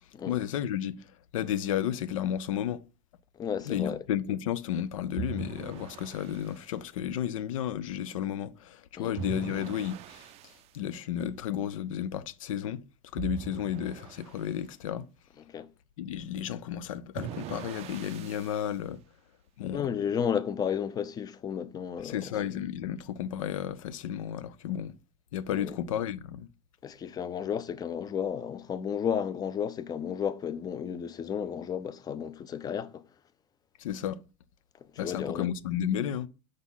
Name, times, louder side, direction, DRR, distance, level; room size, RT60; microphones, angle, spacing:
voice 1, 0.3-1.0 1.3-2.8 3.7-10.3 10.7-12.8 13.1-15.1 16.0-19.0 19.6-19.8 22.0-24.9 25.3-26.5 33.8-34.2 35.0-36.3, left 10 dB, 85° left, 0.5 m, -32 dB
voice 2, 3.4-4.0 9.0-9.2 15.5-15.7 19.7-22.3 25.5-25.8 26.8-33.0 35.0-35.5, left 8 dB, 25° left, 0.5 m, -33 dB
sound 1, 5.2-6.6 9.1-10.7 13.2-14.5 17.1-18.7, right 11 dB, 40° right, 0.4 m, -41 dB
4.9 x 4.0 x 5.5 m
supercardioid pair, 120°, 17 cm